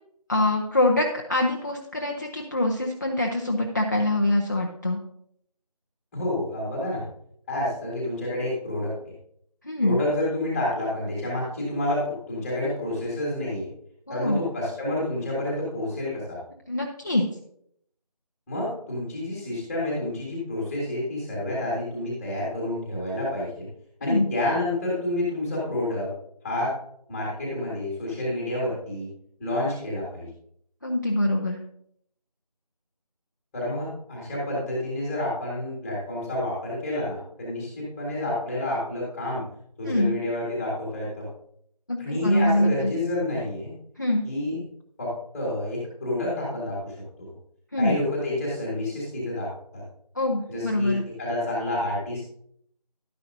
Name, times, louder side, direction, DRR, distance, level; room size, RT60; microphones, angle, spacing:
voice 1, 0.3-5.0 9.6-10.0 14.1-14.4 16.7-17.2 24.0-24.3 30.8-31.6 39.9-40.2 41.9-42.9 44.0-44.2 47.7-48.0 50.1-51.0, left 1 dB, 30° left, 0 dB, 0.7 m, -24 dB
voice 2, 6.1-7.0 7.5-9.1 9.8-13.7 14.1-16.4 18.5-23.7 24.0-26.1 26.4-26.7 27.1-29.1 29.4-30.3 33.5-39.4 39.8-41.3 42.0-43.7 44.2-44.6 45.0-46.9 47.8-49.8 50.5-52.3, left 1 dB, 5° left, -6 dB, 1.7 m, -29 dB
12.5 x 10.0 x 2.7 m, 0.70 s
figure-of-eight pair, 170°, 20 cm